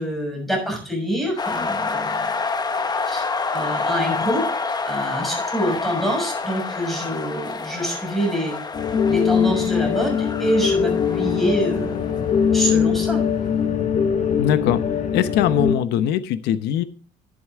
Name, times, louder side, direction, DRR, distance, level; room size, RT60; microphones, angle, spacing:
voice 1, 0.0-2.3 3.0-4.4 4.8-8.5 9.1-12.1 12.5-13.2, equal, ahead, 1 dB, 6.6 m, -26 dB
sound 1, 1.4-13.1, left 4 dB, 25° left, 1.0 m, -28 dB
sound 2, 8.7-15.8, left 7 dB, 45° left, 1.2 m, -21 dB
voice 2, 14.4-14.8 15.1-16.8, left 10 dB, 80° left, 13 dB, 0.9 m, -21 dB
10.5 x 10.0 x 3.6 m, 0.40 s
cardioid pair, 110°, 17 cm